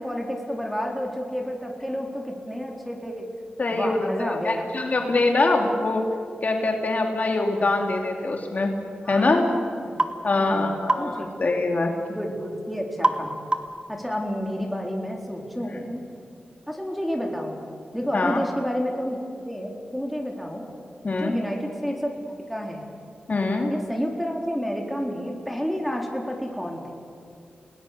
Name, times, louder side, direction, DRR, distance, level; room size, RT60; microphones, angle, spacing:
voice 1, 0.0-3.3 3.7-4.7 9.0-10.0 10.3-11.3 12.1-13.4 13.9-16.0 16.7-17.6 17.9-19.2 19.5-20.6 21.2-22.8 23.7-26.9, equal, ahead, 1 dB, 4.0 m, -30 dB
voice 2, 3.6-6.0 6.4-8.7 9.1-9.4 10.2-11.9 18.1-18.4 21.0-21.4 23.3-23.7, left 2 dB, 50° left, 2 dB, 2.6 m, -23 dB
sound 1, 10.0-10.2 10.9-11.1 13.0-13.3 13.5-13.8, right 2 dB, 30° right, 1.5 m, -23 dB
30.0 x 19.5 x 6.9 m, 2.5 s
wide cardioid pair, 85°, 3 cm